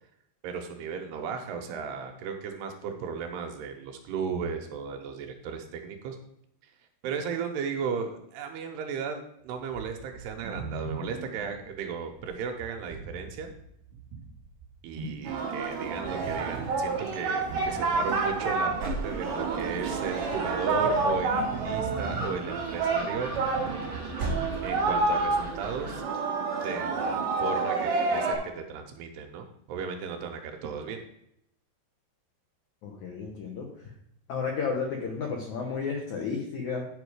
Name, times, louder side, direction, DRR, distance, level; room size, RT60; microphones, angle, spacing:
voice 1, 0.4-6.2 7.0-13.5 14.8-23.3 24.6-26.0 26.6-31.0, right 6 dB, 80° right, 4 dB, 2.8 m, -35 dB
sound 1, 9.7-25.4, right 4 dB, 40° right, 2.2 m, -41 dB
Singing, 15.2-28.3, right 3 dB, 60° right, 3.0 m, -29 dB
Gull seagull, 17.5-26.0, right 2 dB, 25° right, 2.8 m, -38 dB
voice 2, 32.8-33.9 34.3-36.9, left 5 dB, 80° left, 1 dB, 1.7 m, -32 dB
10.0 x 5.2 x 4.9 m, 0.74 s
omnidirectional pair, 4.9 m